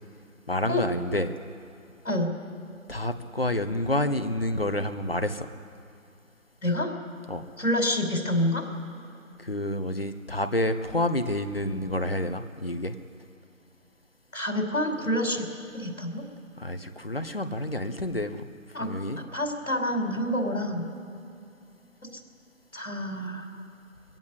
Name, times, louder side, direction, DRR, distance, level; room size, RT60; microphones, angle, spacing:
voice 1, 0.5-1.3 2.9-5.5 7.3-7.5 9.4-12.9 16.6-18.4 18.8-19.2, left 1 dB, 45° left, 9 dB, 1.3 m, -29 dB
voice 2, 7.6-8.6 14.3-15.5 15.7-16.2 18.7-18.9 19.2-20.8 22.7-23.5, left 1 dB, 80° left, 3 dB, 5.2 m, -27 dB
22.5 x 16.5 x 8.2 m, 2.6 s
figure-of-eight pair, 170°, 41 cm